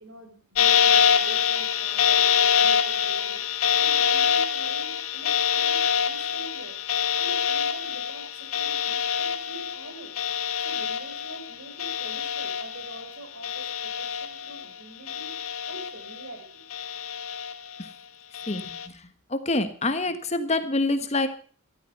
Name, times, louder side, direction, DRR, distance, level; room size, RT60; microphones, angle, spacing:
voice 1, 0.0-6.8 7.2-10.1 10.6-16.6, right 1 dB, 70° right, 6 dB, 5.1 m, -45 dB
sound 1, 0.6-13.1 13.4-14.6 15.1-16.3 16.7-17.8 18.3-18.9, left 8 dB, 85° left, 1.4 m, -25 dB
voice 2, 18.5-21.3, left 2 dB, 30° left, 10 dB, 1.3 m, -27 dB
14.5 x 13.0 x 5.4 m, 0.43 s
head